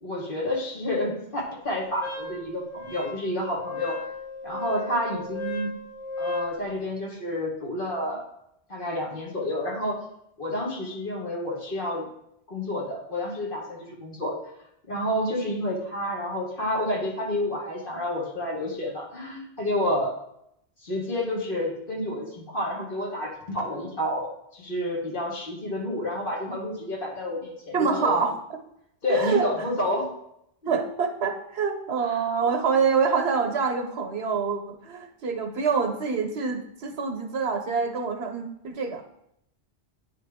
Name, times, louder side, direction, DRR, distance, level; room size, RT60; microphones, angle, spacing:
voice 1, 0.0-4.0 4.4-5.7 6.2-8.2 8.7-10.0 10.4-12.1 12.5-14.4 14.9-20.1 20.8-28.2 29.0-30.1, left 1 dB, 55° left, -2 dB, 1.6 m, -29 dB
Wind instrument woodwind instrument, 2.0-6.6, left 3 dB, 25° left, 1.3 m, -35 dB
voice 2, 27.7-28.3 29.1-29.5 30.7-39.0, right 5 dB, 75° right, 5 dB, 1.0 m, -26 dB
9.5 x 3.5 x 3.5 m, 0.77 s
omnidirectional pair, 1.1 m